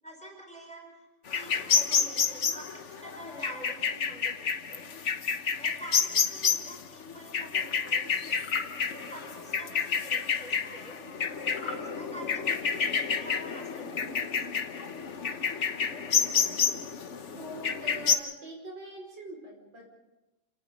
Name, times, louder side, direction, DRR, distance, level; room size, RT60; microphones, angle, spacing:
voice 1, 0.0-4.9 5.6-8.2 8.9-10.9 11.5-12.9 13.2-14.5, right 1 dB, 5° left, 1 dB, 5.1 m, -47 dB
sound 1, 1.3-18.2, left 6 dB, 45° left, 1.1 m, -29 dB
sound 2, 8.3-8.7 11.5-11.9, left 4 dB, 85° left, 3.0 m, -39 dB
voice 2, 17.4-19.9, right 1 dB, 60° right, 0 dB, 5.7 m, -43 dB
28.0 x 18.5 x 5.3 m, 1.0 s
omnidirectional pair, 2.3 m